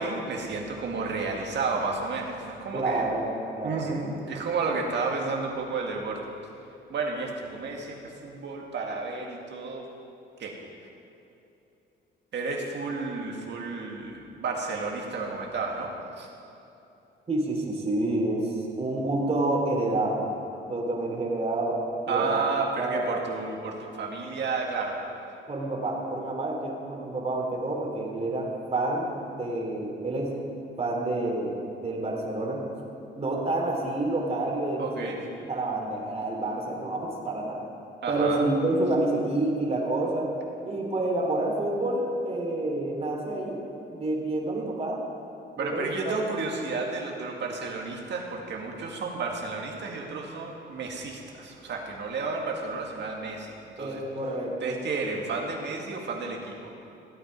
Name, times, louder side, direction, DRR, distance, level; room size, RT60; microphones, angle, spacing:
voice 1, 0.0-3.0 3.6-6.2 6.9-9.9 10.4-10.5 12.3-15.9 16.2-16.3 22.1-25.0 34.8-35.2 38.0-38.4 45.6-54.0 54.6-56.7, right 4 dB, 60° right, 0 dB, 2.1 m, -32 dB
voice 2, 2.7-4.0 17.3-20.2 20.7-21.8 22.1-22.5 22.8-23.2 25.5-30.3 30.8-31.6 31.8-32.6 33.1-37.6 38.1-40.3 40.6-43.6 43.9-45.0 45.5-46.2 53.8-54.8, right 2 dB, 30° right, -1 dB, 2.9 m, -28 dB
15.5 x 8.9 x 5.4 m, 2.9 s
cardioid pair, 90°, 20 cm